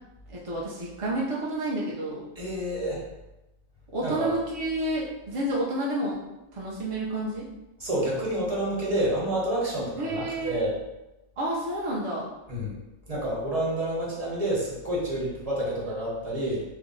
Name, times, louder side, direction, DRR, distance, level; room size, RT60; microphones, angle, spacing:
voice 1, 0.3-2.3 3.9-6.2 6.5-7.5 10.0-10.6 11.4-12.3, right 1 dB, 55° right, -5 dB, 0.3 m, -30 dB
voice 2, 2.4-3.0 4.0-4.3 7.8-10.7 12.5-12.7 13.1-16.6, right 1 dB, 35° right, -5 dB, 0.9 m, -28 dB
2.6 x 2.1 x 3.7 m, 0.98 s
omnidirectional pair, 1.2 m